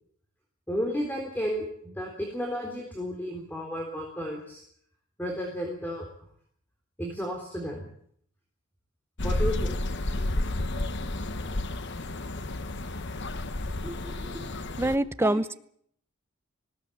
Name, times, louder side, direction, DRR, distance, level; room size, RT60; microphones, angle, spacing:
voice 1, 0.7-4.6 5.2-6.1 7.0-7.9 9.2-9.8 15.2-15.4, equal, 10° left, 1 dB, 3.7 m, -33 dB
sound 1, 9.2-15.0, left 1 dB, 55° left, 1.2 m, -31 dB
voice 2, 13.8-14.5 14.8-15.6, right 1 dB, 10° right, 12 dB, 0.8 m, -27 dB
19.0 x 17.5 x 8.6 m, 0.66 s
head